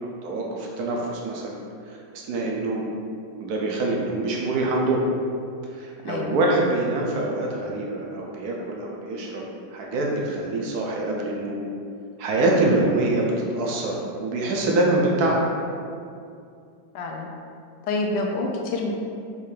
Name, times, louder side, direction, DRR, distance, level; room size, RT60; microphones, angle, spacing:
voice 1, 0.0-1.6 1.9-2.9 3.4-5.1 5.7-9.4 9.7-11.7 12.2-15.4, right 2 dB, 70° right, -1 dB, 1.0 m, -25 dB
voice 2, 16.9-17.3 17.9-18.9, left 3 dB, 75° left, 1 dB, 1.1 m, -27 dB
5.5 x 2.5 x 3.2 m, 2.4 s
omnidirectional pair, 2.1 m